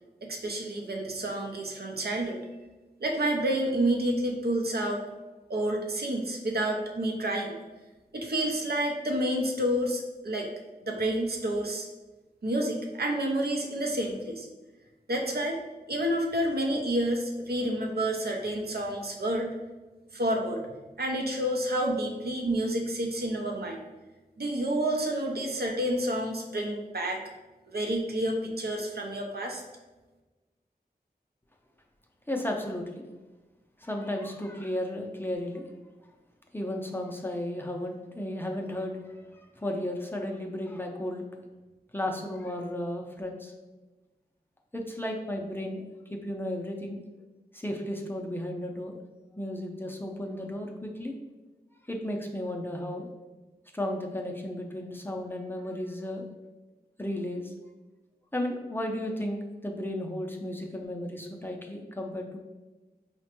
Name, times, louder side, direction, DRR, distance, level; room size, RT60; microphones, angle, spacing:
voice 1, 0.2-2.4 3.0-5.0 5.5-7.5 8.1-10.5 10.8-11.9 12.4-14.5 15.1-15.6 15.9-19.6 20.1-20.6 21.0-23.8 24.4-27.2 27.7-29.6, right 1 dB, 70° right, 1 dB, 0.6 m, -29 dB
voice 2, 32.3-33.1 33.8-35.6 36.5-41.2 41.9-43.5 44.7-47.0 47.5-48.9 49.4-51.2 51.9-53.1 53.7-56.3 57.0-57.5 58.3-62.4, left 1 dB, 15° left, 0 dB, 0.5 m, -34 dB
4.8 x 2.1 x 2.9 m, 1.2 s
wide cardioid pair, 60°, 17 cm